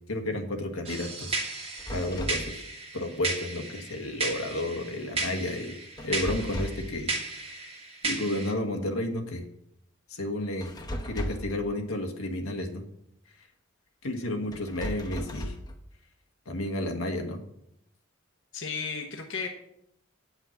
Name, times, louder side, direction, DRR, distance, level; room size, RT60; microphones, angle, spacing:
voice 1, 0.1-2.6 2.9-5.7 6.0-7.6 8.0-9.4 10.1-10.7 11.1-12.8 14.0-15.5 16.4-17.4, left 1 dB, 90° left, 4 dB, 1.5 m, -32 dB
sound 1, 0.8-8.5, right 3 dB, 30° right, 1.7 m, -35 dB
sound 2, 1.8-2.5 6.0-6.9 10.6-11.6 14.5-15.7, equal, 20° left, 0.9 m, -35 dB
voice 2, 18.5-19.5, left 5 dB, 65° left, 2 dB, 1.0 m, -34 dB
8.8 x 5.7 x 7.1 m, 0.77 s
head